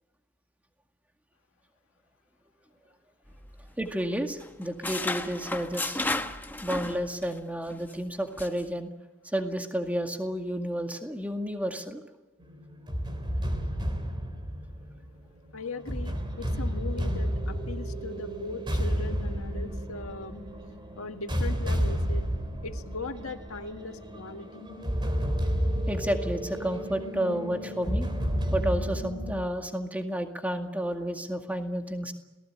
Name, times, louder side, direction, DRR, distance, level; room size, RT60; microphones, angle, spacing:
sound 1, 3.3-4.1 4.4-7.4 7.7-7.9 8.4-8.6, left 2 dB, 10° left, 1.3 m, -34 dB
voice 1, 3.8-6.0 6.6-8.9 9.3-12.0 25.9-28.1 28.5-32.1, equal, 5° right, 4 dB, 2.1 m, -31 dB
sound 2, 12.4-29.4, equal, 25° right, 3.7 m, -31 dB
voice 2, 15.5-20.4 21.0-22.3 22.6-24.7, left 3 dB, 85° left, 6 dB, 1.8 m, -39 dB
28.0 x 19.0 x 8.9 m, 1.1 s
head